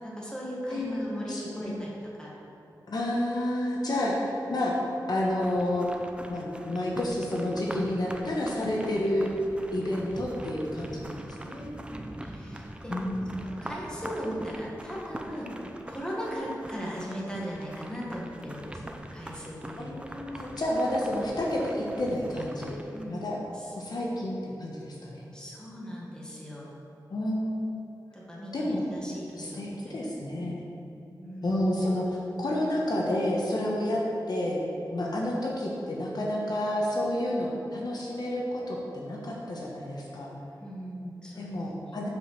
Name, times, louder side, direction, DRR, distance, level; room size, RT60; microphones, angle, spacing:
voice 1, 0.0-1.9 2.2-2.3 11.8-13.0 13.4-15.5 15.9-18.8 19.1-20.0 22.9-23.2 25.3-26.7 28.1-29.9 30.3-30.5 31.2-31.6 40.6-41.5, equal, 10° left, -5 dB, 1.7 m, -38 dB
voice 2, 0.7-1.9 2.9-4.7 5.1-5.9 6.3-9.3 9.7-11.8 12.9-13.4 19.8-22.7 23.1-23.4 23.8-25.2 27.1-27.8 28.5-28.8 29.4-30.7 31.4-32.0 32.4-34.0 34.3-34.6 34.9-40.4 41.3-42.1, left 1 dB, 60° left, -3 dB, 1.2 m, -30 dB
sound 1, 5.4-23.0, right 1 dB, 15° right, 0.5 m, -43 dB
7.5 x 5.2 x 5.9 m, 2.9 s
wide cardioid pair, 115°, 8 cm